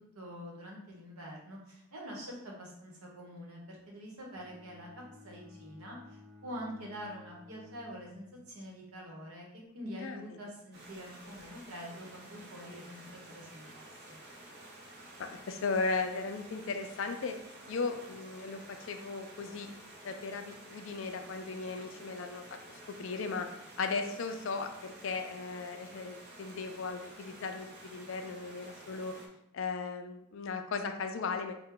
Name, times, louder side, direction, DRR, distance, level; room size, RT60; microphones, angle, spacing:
voice 1, 0.1-4.9 5.2-9.5 9.7-14.2, equal, 80° right, -1 dB, 1.1 m, -45 dB
Bowed string instrument, 4.3-8.6, left 3 dB, ahead, 0.8 m, -56 dB
Stream, 10.7-29.3, right 1 dB, 45° right, 0.6 m, -52 dB
voice 2, 15.2-17.3 17.7-18.6 18.9-19.7 20.0-23.5 23.8-29.1 29.5-31.5, left 4 dB, 60° left, 6 dB, 0.4 m, -36 dB
4.4 x 2.2 x 3.7 m, 0.80 s
head